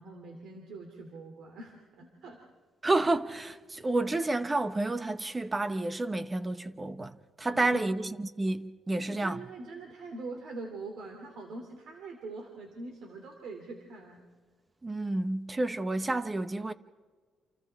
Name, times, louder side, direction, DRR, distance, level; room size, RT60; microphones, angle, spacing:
voice 1, 0.0-2.4 7.5-7.9 8.9-14.2, right 3 dB, 75° right, 2.9 m, -43 dB
voice 2, 2.8-9.4 14.8-16.7, right 2 dB, 20° right, 1.0 m, -30 dB
28.5 x 27.5 x 3.6 m
cardioid pair, 90°, 0 cm